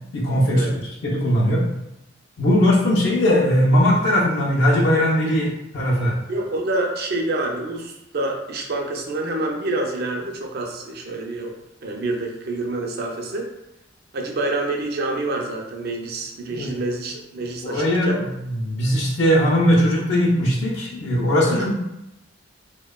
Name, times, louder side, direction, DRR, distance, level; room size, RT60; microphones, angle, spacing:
voice 1, 0.1-0.7 1.0-1.6 2.4-6.2 16.5-16.7 17.6-21.7, equal, 65° left, -4 dB, 0.4 m, -19 dB
voice 2, 6.3-11.5 11.8-13.5 14.1-18.2 21.5-21.7, right 2 dB, 55° right, 1 dB, 0.4 m, -27 dB
2.7 x 2.1 x 2.2 m, 0.89 s
head